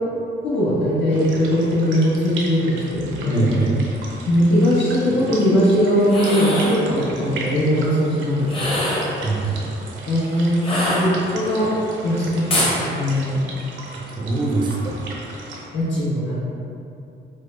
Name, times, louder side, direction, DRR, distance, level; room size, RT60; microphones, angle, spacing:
voice 1, 0.4-3.5 4.3-8.8 9.4-9.7 10.0-13.4 15.7-16.3, equal, 70° left, -9 dB, 1.2 m, -20 dB
sound 1, 1.1-15.7, right 2 dB, 70° right, 0.6 m, -37 dB
voice 2, 3.3-3.8 9.2-9.7 14.2-15.2, right 2 dB, 25° right, 0 dB, 0.4 m, -23 dB
sound 2, 6.0-6.8 8.4-9.2 10.6-11.5 12.5-12.8, left 1 dB, 30° left, 0.8 m, -23 dB
4.8 x 2.0 x 2.3 m, 2.7 s
cardioid pair, 90°, 20 cm